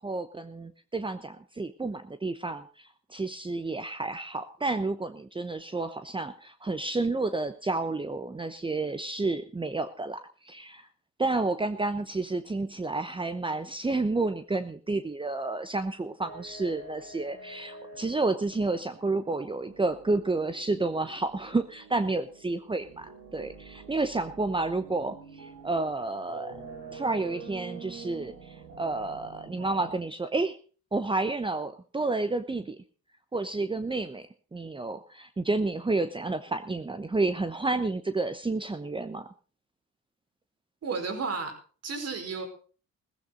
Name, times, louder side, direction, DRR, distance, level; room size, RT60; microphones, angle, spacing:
voice 1, 0.0-10.9 11.2-23.1 23.3-26.5 26.9-30.6 30.9-32.8 33.3-34.3 34.5-39.3, right 3 dB, 15° right, 10 dB, 1.0 m, -30 dB
sound 1, 16.2-29.9, right 4 dB, 75° right, 7.0 m, -47 dB
voice 2, 40.8-41.5 41.8-42.5, right 4 dB, 55° right, 5 dB, 5.0 m, -32 dB
16.0 x 14.5 x 4.0 m, 0.38 s
cardioid pair, 90°, 30 cm